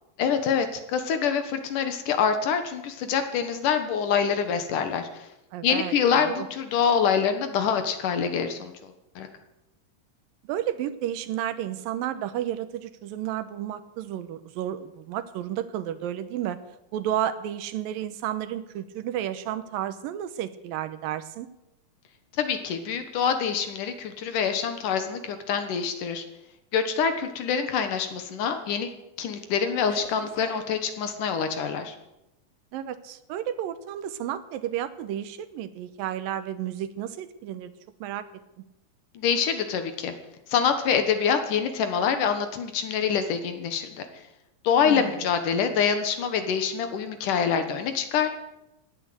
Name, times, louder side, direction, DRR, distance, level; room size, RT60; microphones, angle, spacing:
voice 1, 0.2-5.2 5.6-9.3 22.4-26.2 26.7-28.9 29.2-31.9 39.1-40.1 40.5-43.9 44.6-48.3, left 7 dB, 70° left, 8 dB, 2.7 m, -25 dB
voice 2, 5.5-6.5 10.4-16.6 16.9-21.5 32.7-37.7 38.0-38.3 44.8-45.1, right 11 dB, 80° right, 12 dB, 2.6 m, -32 dB
sound 1, 28.0-28.3 28.7-29.0 29.8-31.3, equal, 10° left, 1.9 m, -45 dB
17.0 x 10.5 x 7.8 m, 0.91 s
omnidirectional pair, 4.1 m